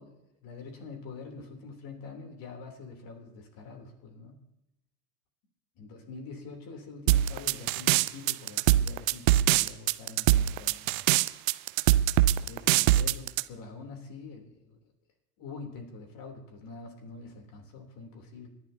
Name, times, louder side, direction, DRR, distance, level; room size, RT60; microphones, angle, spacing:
voice 1, 0.0-4.4 5.8-11.0 12.4-14.8 15.4-18.5, left 4 dB, 45° left, 3 dB, 3.5 m, -45 dB
sound 1, 7.1-13.4, right 15 dB, 60° right, 0.6 m, -22 dB
26.0 x 11.5 x 2.9 m, 0.90 s
hypercardioid pair, 95°, 48 cm